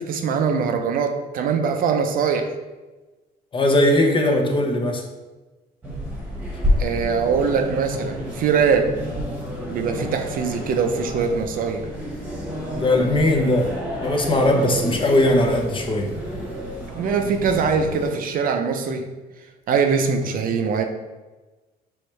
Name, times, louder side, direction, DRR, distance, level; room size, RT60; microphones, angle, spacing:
voice 1, 0.0-2.5 6.8-8.9 9.7-11.9 16.9-19.1 19.7-20.8, right 5 dB, 55° right, 5 dB, 0.5 m, -22 dB
voice 2, 3.5-5.0 12.8-13.7 14.0-16.1, left 1 dB, 30° left, 3 dB, 0.7 m, -19 dB
sound 1, 5.8-18.1, equal, 10° right, 1.2 m, -29 dB
4.7 x 3.1 x 3.1 m, 1.2 s
cardioid pair, 110°, 17 cm